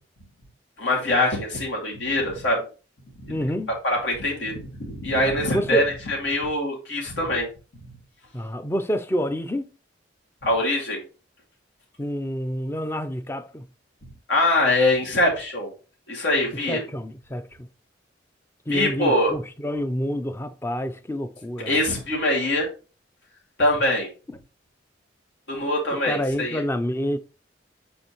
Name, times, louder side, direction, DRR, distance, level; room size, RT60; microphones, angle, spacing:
voice 1, 0.8-2.6 3.2-3.3 3.8-7.5 10.4-11.0 14.3-15.7 16.1-16.8 18.7-19.3 21.7-22.7 23.6-24.1 25.5-26.6, left 1 dB, 70° left, 2.5 m, -23 dB
voice 2, 3.3-3.7 5.5-5.9 8.3-9.7 12.0-13.7 16.5-17.7 18.7-21.8 24.3-24.4 25.9-27.2, equal, 15° left, 0.5 m, -28 dB
7.8 x 4.3 x 3.0 m
head